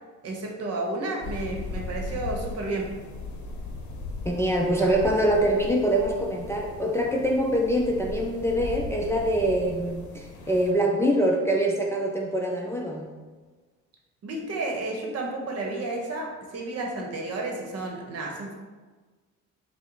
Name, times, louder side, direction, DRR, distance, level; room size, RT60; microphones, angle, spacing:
voice 1, 0.2-2.9 14.2-18.6, right 2 dB, 55° right, 0 dB, 0.9 m, -32 dB
sound 1, 1.2-10.7, left 3 dB, 70° left, 0.7 m, -38 dB
voice 2, 4.3-13.1, right 1 dB, 10° left, -1 dB, 0.4 m, -24 dB
4.6 x 2.1 x 3.8 m, 1.4 s
cardioid pair, 90°, 30 cm